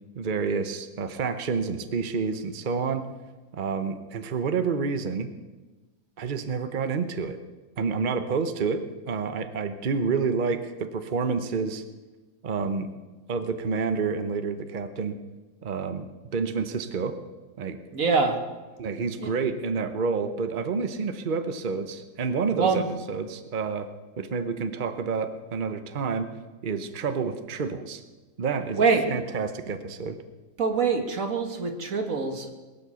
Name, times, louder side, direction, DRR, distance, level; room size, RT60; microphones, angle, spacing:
voice 1, 0.2-3.1 3.5-5.3 6.2-7.4 7.8-11.8 12.4-12.9 13.3-15.2 15.6-17.2 17.6-17.9 18.8-22.8 23.1-23.9 24.2-26.3 26.6-28.0 28.4-30.2, right 5 dB, 40° right, 9 dB, 1.0 m, -29 dB
voice 2, 17.9-18.4 19.2-19.3 22.6-22.8 28.8-29.1 30.6-32.5, right 4 dB, 85° right, 4 dB, 2.1 m, -24 dB
21.5 x 8.0 x 7.0 m, 1.2 s
omnidirectional pair, 1.4 m